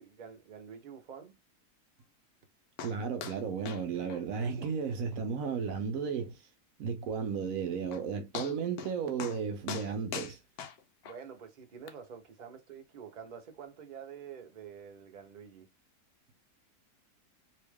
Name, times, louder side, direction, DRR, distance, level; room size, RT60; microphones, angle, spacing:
voice 1, 0.0-1.4 11.0-15.7, right 7 dB, 40° right, 0.7 m, -48 dB
sound 1, 2.8-3.0 3.2-3.4 3.7-3.8 4.1-4.2 4.6-4.7 5.1-5.2 5.7-5.8 7.5-7.6 7.9-8.0 8.3-8.9 9.2-9.4 9.7-11.2 11.9-12.0, left 8 dB, 75° left, 1.1 m, -41 dB
voice 2, 2.8-6.4 6.8-10.4, right 6 dB, 70° right, 1.0 m, -34 dB
3.1 x 2.8 x 3.4 m
omnidirectional pair, 1.7 m